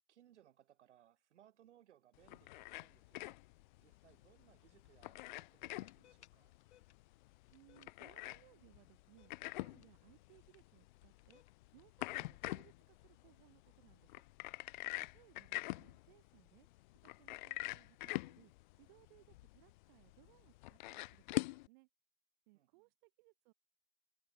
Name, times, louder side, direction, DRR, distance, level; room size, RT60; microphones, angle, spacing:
voice 1, 0.1-3.4 3.8-6.6 14.9-15.3 22.5-22.9, right 11 dB, 80° right, 3.9 m, -68 dB
sound 1, 2.2-21.7, left 20 dB, 40° left, 0.7 m, -46 dB
sound 2, 3.9-15.9, left 12 dB, 75° left, 3.8 m, -74 dB
voice 2, 7.5-11.4 11.7-14.1 15.1-16.7 17.0-18.5 18.8-21.9 22.5-23.5, right 24 dB, 40° right, 1.7 m, -67 dB
supercardioid pair, 160°, 35 cm